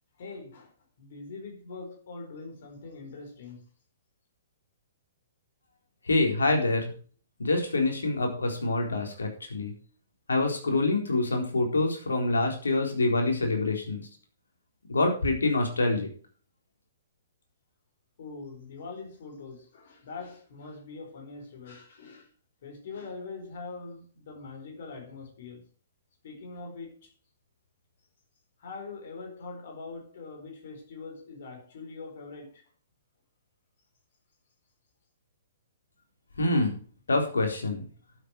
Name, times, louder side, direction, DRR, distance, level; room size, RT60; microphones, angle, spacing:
voice 1, 0.2-0.7 1.0-3.6 18.2-22.3 22.6-25.6 26.2-27.1 28.6-32.6, left 4 dB, 50° left, 4.7 m, -43 dB
voice 2, 6.1-6.9 7.4-9.7 10.3-14.1 14.9-16.1 36.4-36.8 37.1-37.8, left 2 dB, 70° left, 4.0 m, -26 dB
12.5 x 8.1 x 4.7 m
figure-of-eight pair, 115°, 0 cm